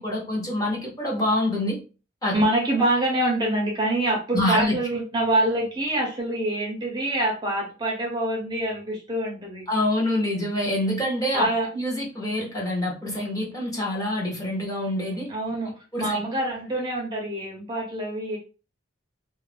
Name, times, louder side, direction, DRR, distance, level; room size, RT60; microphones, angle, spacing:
voice 1, 0.0-1.8 2.2-2.4 4.3-4.7 9.7-15.3 15.9-16.2, left 1 dB, 20° left, -3 dB, 0.7 m, -26 dB
voice 2, 2.3-9.6 11.3-11.7 15.3-18.4, right 1 dB, 20° right, -1 dB, 0.5 m, -25 dB
2.4 x 2.0 x 3.2 m, 0.33 s
head